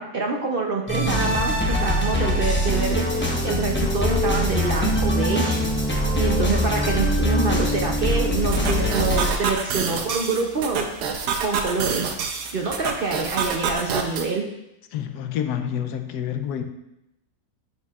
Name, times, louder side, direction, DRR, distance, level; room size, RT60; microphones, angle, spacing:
voice 1, 0.0-3.0 3.4-5.6 6.2-10.9 11.4-12.1 12.5-14.4, right 4 dB, 60° right, 1 dB, 0.6 m, -26 dB
sound 1, 0.9-9.3, equal, 15° left, 0.4 m, -23 dB
sound 2, 8.5-14.3, right 5 dB, 80° right, 1.3 m, -28 dB
voice 2, 14.9-16.6, left 9 dB, 80° left, 7 dB, 1.1 m, -28 dB
12.0 x 4.5 x 2.4 m, 0.86 s
omnidirectional pair, 1.7 m